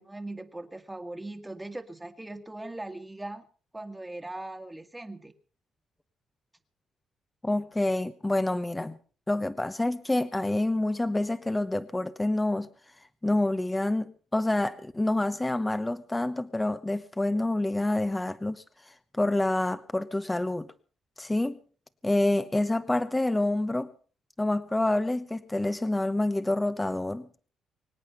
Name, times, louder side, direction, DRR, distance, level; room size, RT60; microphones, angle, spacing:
voice 1, 0.0-3.4 3.7-5.3, right 2 dB, 10° right, 8 dB, 1.7 m, -40 dB
voice 2, 7.4-9.0 9.3-12.7 13.2-20.7 21.2-21.6 22.0-23.9 24.4-27.5, left 2 dB, 15° left, 12 dB, 0.9 m, -27 dB
25.0 x 8.6 x 5.5 m, 0.41 s
cardioid pair, 90°, 0 cm